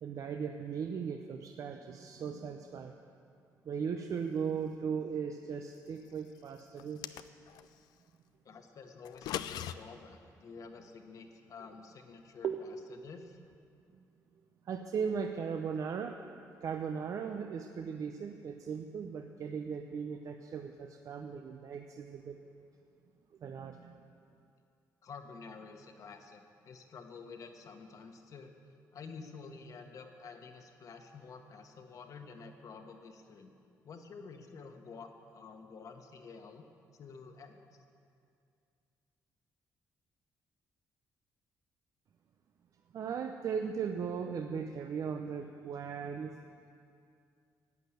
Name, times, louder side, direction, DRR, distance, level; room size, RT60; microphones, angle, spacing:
voice 1, 0.0-2.9 3.7-7.2 12.4-12.6 14.6-16.2 16.6-22.4 23.4-24.0 42.9-46.4, right 6 dB, 55° right, 5 dB, 0.7 m, -37 dB
sound 1, 6.8-7.7 9.0-9.7, left 11 dB, 85° left, 0.5 m, -39 dB
voice 2, 8.4-13.4 25.0-28.5 28.9-33.5 33.8-36.6 36.9-37.6, left 5 dB, 55° left, 5 dB, 1.4 m, -50 dB
12.0 x 8.2 x 9.3 m, 2.4 s
cardioid pair, 95°, 7 cm